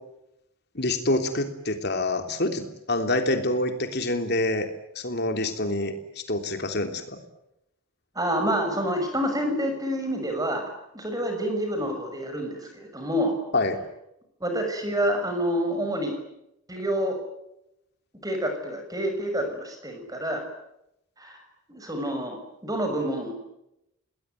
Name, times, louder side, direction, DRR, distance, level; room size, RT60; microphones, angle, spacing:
voice 1, 0.7-4.7 4.9-7.2 13.5-13.8, left 2 dB, 50° left, 7 dB, 3.2 m, -26 dB
voice 2, 8.1-10.6 10.9-13.3 14.4-16.2 16.7-17.2 18.2-20.4 21.2-21.4 21.7-23.3, equal, 15° right, 5 dB, 6.2 m, -28 dB
29.0 x 20.5 x 9.3 m, 0.85 s
head